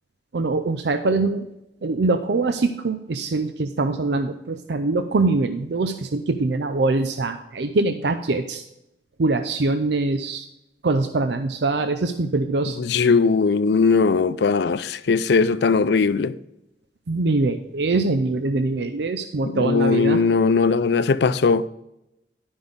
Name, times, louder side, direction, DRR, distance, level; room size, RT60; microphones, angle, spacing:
voice 1, 0.3-1.5 1.8-8.6 9.2-10.5 10.8-12.8 17.1-20.2, right 3 dB, 65° right, 0.5 m, -23 dB
voice 2, 12.8-16.3 19.5-21.7, left 4 dB, 65° left, 0.4 m, -19 dB
11.5 x 5.4 x 5.2 m
head